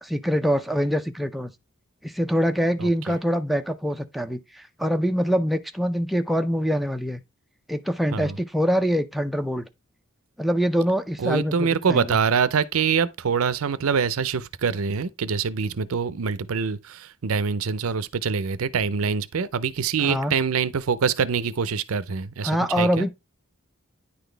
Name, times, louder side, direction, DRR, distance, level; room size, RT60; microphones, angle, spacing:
voice 1, 0.0-1.5 2.0-7.2 7.7-9.7 10.4-12.2 20.0-20.3 22.4-23.1, equal, ahead, 0.4 m, -24 dB
voice 2, 2.8-3.1 8.1-8.4 11.2-23.1, right 6 dB, 85° right, 0.5 m, -25 dB
9.9 x 4.0 x 3.3 m
head